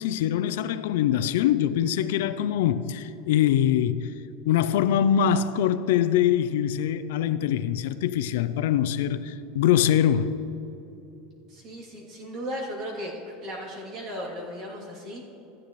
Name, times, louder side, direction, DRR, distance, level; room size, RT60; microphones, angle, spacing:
voice 1, 0.0-4.1 4.5-10.4, left 10 dB, 80° left, 0.4 m, -23 dB
voice 2, 11.5-15.2, equal, 45° right, 2.7 m, -36 dB
14.5 x 9.9 x 3.1 m
supercardioid pair, 140°, 0 cm